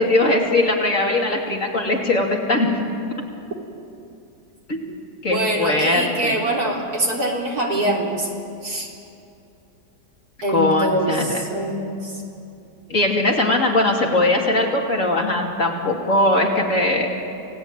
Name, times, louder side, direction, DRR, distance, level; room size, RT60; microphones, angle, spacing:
voice 1, 0.0-2.8 4.7-5.0 5.2-6.4 10.5-11.4 12.9-17.3, left 2 dB, 45° left, -1 dB, 3.2 m, -20 dB
voice 2, 5.3-8.3 8.6-8.9 10.4-12.1, right 1 dB, 60° right, -2 dB, 4.2 m, -24 dB
28.5 x 18.0 x 9.0 m, 2.6 s
omnidirectional pair, 1.9 m